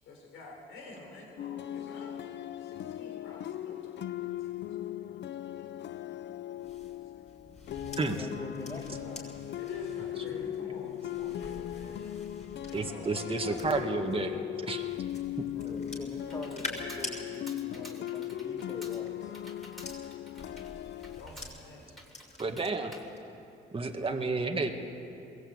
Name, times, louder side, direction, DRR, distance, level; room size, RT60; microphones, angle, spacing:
voice 1, 0.0-4.8 5.0-5.1 5.5-5.7 7.1-7.2 9.6-12.1 12.7-14.4 20.7-20.8 21.2-22.0, left 3 dB, 90° left, 0 dB, 4.2 m, -48 dB
sound 1, 1.4-21.2, left 12 dB, 60° left, 0.6 m, -38 dB
sound 2, 6.6-14.2 14.7-17.2 18.4-22.7 23.1-23.4, left 2 dB, 35° left, 6.5 m, -47 dB
voice 2, 7.9-9.5 10.2-10.7 15.5-19.3, left 1 dB, 20° left, -3 dB, 4.3 m, -45 dB
voice 3, 12.7-14.4 14.6-14.8 22.4-22.9 23.7-24.7, right 3 dB, 30° right, 3 dB, 2.0 m, -31 dB
Computer keyboard, 15.5-24.1, equal, ahead, 3.4 m, -53 dB
21.5 x 18.0 x 8.9 m, 2.7 s
cardioid pair, 90°, 20 cm